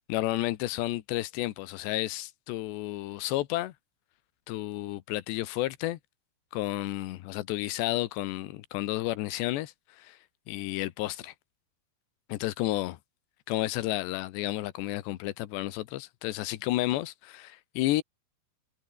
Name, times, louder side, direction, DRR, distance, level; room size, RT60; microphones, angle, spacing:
voice 1, 0.1-3.7 4.5-6.0 6.5-10.2 10.5-11.3 12.3-13.0 13.5-18.0, left 16 dB, 90° left, 3.3 m, -31 dB
omnidirectional pair, 4.9 m